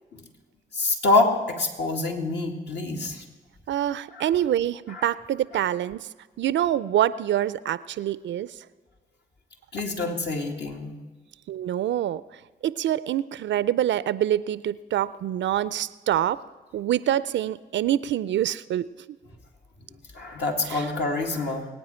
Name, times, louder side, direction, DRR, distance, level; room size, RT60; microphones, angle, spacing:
voice 1, 0.7-3.2 4.1-4.3 4.9-5.0 9.7-10.9 20.1-21.7, left 2 dB, 60° left, 1 dB, 2.3 m, -26 dB
voice 2, 3.7-6.1 6.4-8.5 11.5-12.2 12.6-16.4 16.7-18.9 20.7-20.9, right 11 dB, 65° right, 18 dB, 0.5 m, -25 dB
22.5 x 9.2 x 4.4 m, 1.3 s
supercardioid pair, 45°, 20 cm